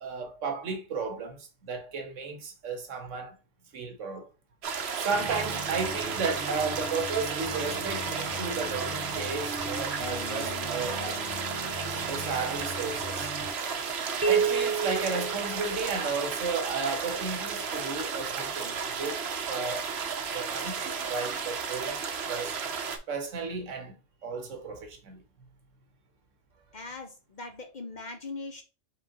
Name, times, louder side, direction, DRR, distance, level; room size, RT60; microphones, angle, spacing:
voice 1, 0.0-3.4 3.7-4.3 4.9-11.3 12.1-13.3 14.3-19.9 20.3-22.6 23.1-23.9 24.2-25.2, right 4 dB, 85° right, 1.3 m, -34 dB
sound 1, 4.6-23.0, right 6 dB, 60° right, 0.9 m, -33 dB
sound 2, 5.1-13.5, left 1 dB, 5° left, 1.6 m, -40 dB
sound 3, 14.2-16.2, right 6 dB, 20° right, 0.4 m, -29 dB
voice 2, 26.7-28.6, left 3 dB, 45° left, 0.7 m, -40 dB
5.0 x 3.7 x 2.8 m
omnidirectional pair, 1.3 m